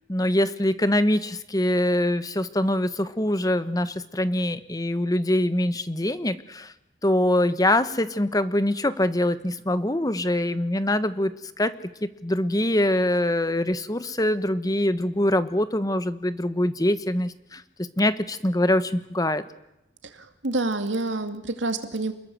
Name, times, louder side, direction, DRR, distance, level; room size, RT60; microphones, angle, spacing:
voice 1, 0.1-6.7 7.0-11.3 11.6-11.7 12.0-17.6 18.0-19.4, left 1 dB, 20° left, 12 dB, 1.2 m, -24 dB
voice 2, 20.1-22.1, right 2 dB, 85° right, 7 dB, 2.4 m, -28 dB
28.0 x 21.0 x 7.8 m, 0.88 s
head